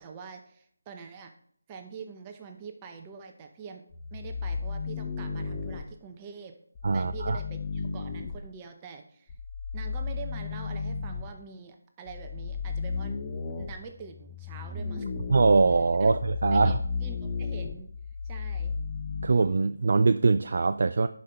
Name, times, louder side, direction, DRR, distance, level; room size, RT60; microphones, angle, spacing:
voice 1, 0.0-1.3 1.7-3.8 4.1-6.6 6.9-9.3 9.7-13.2 13.6-15.3 16.0-16.1 16.5-17.9 18.2-18.7, right 6 dB, 20° right, 4 dB, 0.8 m, -44 dB
sound 1, 3.9-5.8 6.7-8.4 9.3-11.3 12.1-19.3, left 5 dB, 20° left, 0.9 m, -34 dB
voice 2, 6.8-7.4 15.3-16.8 19.2-21.1, right 4 dB, 55° right, 10 dB, 0.4 m, -22 dB
11.0 x 5.4 x 4.4 m, 0.62 s
figure-of-eight pair, 165°, 0 cm